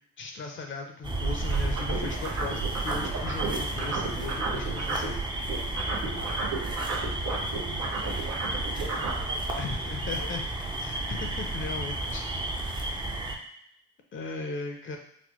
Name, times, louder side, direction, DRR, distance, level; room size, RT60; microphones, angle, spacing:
voice 1, 0.2-5.2 9.5-10.5 10.7-12.2 12.8-13.1 14.1-15.0, left 4 dB, 40° left, 3 dB, 0.6 m, -37 dB
sound 1, 1.0-13.4, right 2 dB, 15° right, 0.4 m, -32 dB
sound 2, 1.5-5.2 5.4-9.2, right 4 dB, 85° right, 0.9 m, -33 dB
voice 2, 6.1-10.3 13.0-13.2, right 1 dB, 55° right, -2 dB, 1.3 m, -46 dB
4.1 x 2.1 x 3.0 m, 0.72 s
cardioid pair, 90°, 30 cm